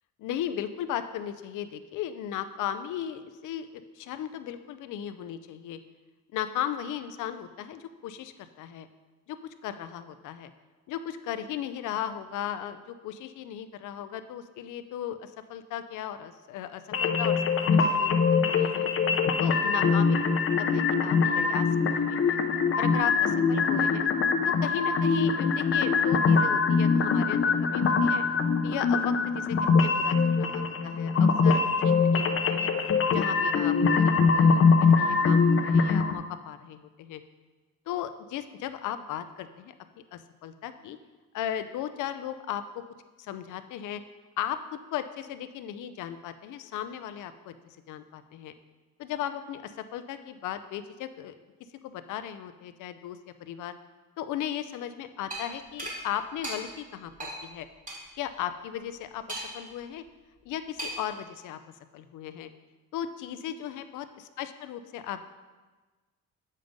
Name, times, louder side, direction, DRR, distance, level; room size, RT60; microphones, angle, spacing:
voice 1, 0.2-5.8 6.3-8.9 9.3-10.5 10.9-18.9 19.4-20.1 20.6-21.7 22.1-22.4 22.8-24.1 24.4-28.2 28.6-32.7 33.1-37.2 37.9-39.7 40.1-41.0 41.3-42.8 43.2-44.0 44.4-47.5 47.9-48.5 49.0-51.3 51.8-53.7 54.2-57.7 58.2-60.0 60.4-61.6 61.9-62.5 62.9-65.3, left 10 dB, 80° left, 11 dB, 0.6 m, -36 dB
sound 1, 16.9-36.1, left 5 dB, 45° left, 0.7 m, -23 dB
sound 2, 55.3-55.4 55.8-56.0 56.4-56.6 57.2-57.4 57.9-58.0 59.3-59.7 60.8-61.1, right 1 dB, 25° right, 2.7 m, -35 dB
7.5 x 5.3 x 5.2 m, 1.3 s
cardioid pair, 90°, 30 cm